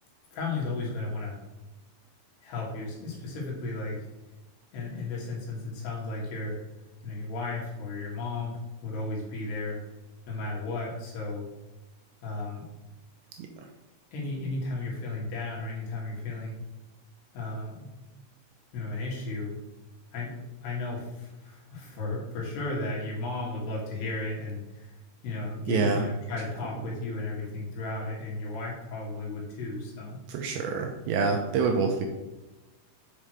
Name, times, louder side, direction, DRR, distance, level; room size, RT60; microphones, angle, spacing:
voice 1, 0.3-1.4 2.4-4.0 4.7-6.6 7.0-9.8 10.3-11.4 12.2-12.6 14.1-16.6 17.3-17.9 18.7-19.6 20.1-24.9 25.2-30.2, left 2 dB, 65° left, -3 dB, 3.7 m, -34 dB
voice 2, 25.7-26.0 30.3-32.1, right 5 dB, 80° right, 3 dB, 2.7 m, -26 dB
7.4 x 5.6 x 4.9 m, 1.0 s
omnidirectional pair, 5.6 m